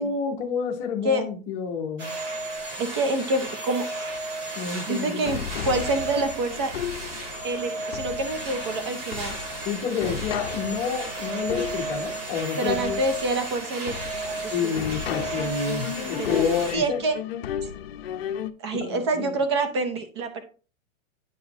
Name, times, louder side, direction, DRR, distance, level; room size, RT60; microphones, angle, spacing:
voice 1, 0.0-2.1 4.6-5.3 9.6-13.0 14.5-17.0 18.8-19.4, left 6 dB, 15° left, 0 dB, 0.8 m, -29 dB
sound 1, 2.0-16.7, right 2 dB, 45° right, 2.2 m, -34 dB
voice 2, 2.8-3.8 4.9-6.7 7.4-9.4 12.6-13.9 14.2-14.8 16.0-16.4 16.7-17.2 18.6-20.4, right 2 dB, 20° right, 9 dB, 0.6 m, -27 dB
sound 2, 5.3-18.5, left 9 dB, 50° left, 0.7 m, -35 dB
9.8 x 4.9 x 2.8 m, 0.36 s
hypercardioid pair, 180°, 40 cm